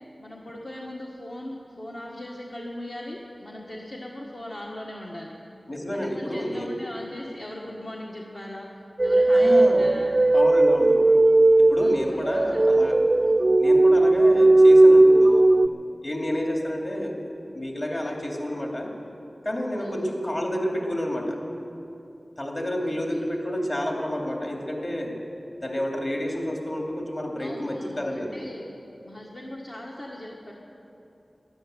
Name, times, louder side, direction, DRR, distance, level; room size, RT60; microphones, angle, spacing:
voice 1, 0.2-5.4 5.9-8.7 9.0-10.1 11.8-12.6 13.2-13.5 19.8-19.9 22.8-23.2 27.4-28.7 29.0-30.5, left 1 dB, 55° left, -3 dB, 1.6 m, -39 dB
voice 2, 5.7-6.7 9.3-9.9 10.3-11.1 11.6-13.0 13.6-15.5 16.0-17.2 17.5-18.9 19.4-21.4 22.4-25.1 25.6-28.3, equal, 40° left, 1 dB, 2.6 m, -29 dB
sound 1, 9.0-15.7, right 2 dB, 40° right, 0.3 m, -17 dB
13.5 x 11.0 x 9.1 m, 2.8 s
wide cardioid pair, 65°, 0 cm